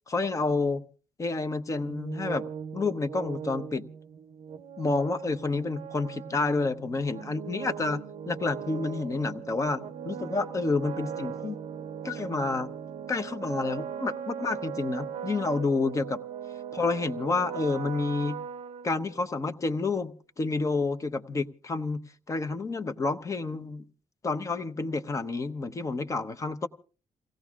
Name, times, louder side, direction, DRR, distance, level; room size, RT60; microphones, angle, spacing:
voice 1, 0.1-0.8 1.2-2.4 2.7-3.8 4.8-11.6 12.0-12.7 13.1-16.2 16.7-18.4 18.8-22.0 22.3-23.9 24.2-26.7, left 3 dB, 30° left, 10 dB, 0.8 m, -29 dB
sound 1, 1.8-19.5, right 8 dB, 70° right, 0.6 m, -39 dB
28.5 x 17.0 x 2.4 m, 0.38 s
cardioid pair, 125°, 11 cm